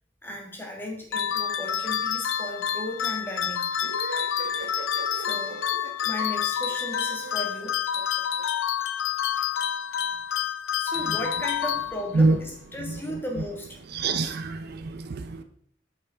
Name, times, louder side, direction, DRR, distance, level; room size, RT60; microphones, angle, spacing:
voice 1, 0.2-3.7 4.4-4.7 5.1-5.6 6.0-7.8 10.0-10.5 10.8-13.8, left 1 dB, 10° left, 0 dB, 1.4 m, -36 dB
sound 1, 1.1-12.3, left 9 dB, 70° left, 0.4 m, -28 dB
sound 2, 3.8-8.4, right 3 dB, 75° right, 1.2 m, -41 dB
voice 2, 13.9-15.4, right 3 dB, 55° right, 9 dB, 0.4 m, -25 dB
8.1 x 5.7 x 3.4 m, 0.66 s
head